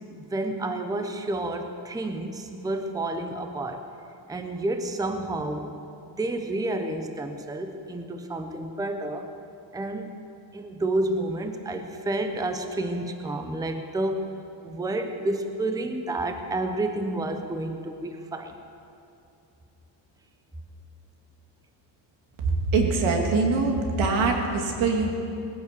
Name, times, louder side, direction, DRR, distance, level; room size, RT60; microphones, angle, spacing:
voice 1, 0.1-3.9 4.3-5.7 6.1-9.3 9.7-10.1 10.5-14.3 14.6-18.6, right 2 dB, 10° right, 6 dB, 0.8 m, -30 dB
voice 2, 22.7-25.1, right 3 dB, 85° right, 2 dB, 2.7 m, -23 dB
19.5 x 10.0 x 6.8 m, 2.6 s
cardioid pair, 140°, 46 cm